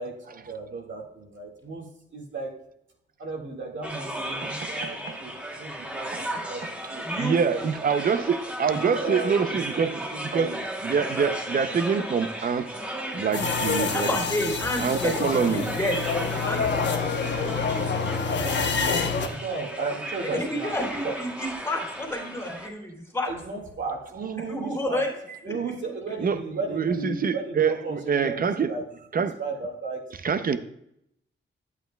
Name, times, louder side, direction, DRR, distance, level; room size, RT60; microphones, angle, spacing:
voice 1, 0.0-1.8 2.1-2.5 3.2-5.3 5.6-7.0 7.5-7.6 8.6-9.6 10.1-10.6 18.3-20.8 21.0-21.2 23.2-25.0 25.4-28.8 29.2-30.0, right 4 dB, 70° right, -1 dB, 1.9 m, -34 dB
sound 1, 3.8-22.7, right 1 dB, 5° right, 1.0 m, -35 dB
voice 2, 4.4-5.2 6.1-6.7 7.2-10.5 10.8-12.8 13.1-14.1 14.8-15.8 16.8-16.9 26.2-26.4 26.7-28.7 29.1-29.4 30.2-30.6, right 6 dB, 45° right, 11 dB, 0.6 m, -26 dB
voice 3, 7.0-7.4 13.9-16.0 16.4-17.9 20.2-23.3 24.5-25.1 25.4-25.5, left 1 dB, 10° left, -2 dB, 2.5 m, -30 dB
sound 2, 13.3-19.3, left 5 dB, 60° left, 0.9 m, -27 dB
11.5 x 8.2 x 2.2 m, 0.76 s
wide cardioid pair, 170°, 20 cm